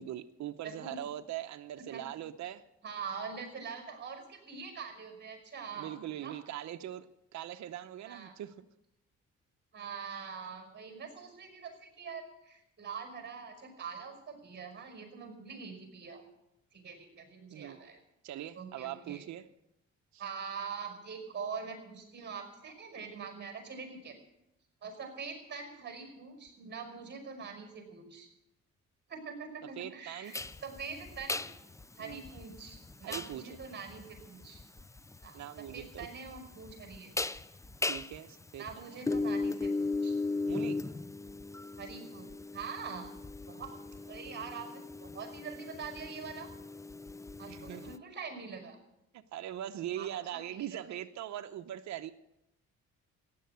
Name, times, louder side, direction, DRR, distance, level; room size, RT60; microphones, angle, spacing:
voice 1, 0.0-2.6 5.7-7.1 7.3-8.7 17.5-17.8 18.2-19.5 20.1-20.3 29.6-30.3 32.0-32.2 33.0-33.6 35.3-36.1 37.9-39.0 40.5-40.8 47.5-47.9 49.1-52.1, right 12 dB, 65° right, 7 dB, 0.8 m, -41 dB
voice 2, 0.6-1.0 1.9-2.0 2.8-6.4 8.0-8.3 9.7-16.2 16.7-18.0 18.6-19.2 20.2-24.2 24.8-28.3 29.1-31.5 31.9-34.6 35.2-35.4 35.7-37.1 38.6-40.2 41.8-43.1 43.5-43.7 44.1-46.5 47.4-48.8 50.0-50.8, right 5 dB, 35° right, 5 dB, 5.4 m, -44 dB
sound 1, 30.3-48.0, left 3 dB, 10° left, 0.5 m, -38 dB
15.5 x 10.5 x 8.0 m, 0.87 s
cardioid pair, 90°, 30 cm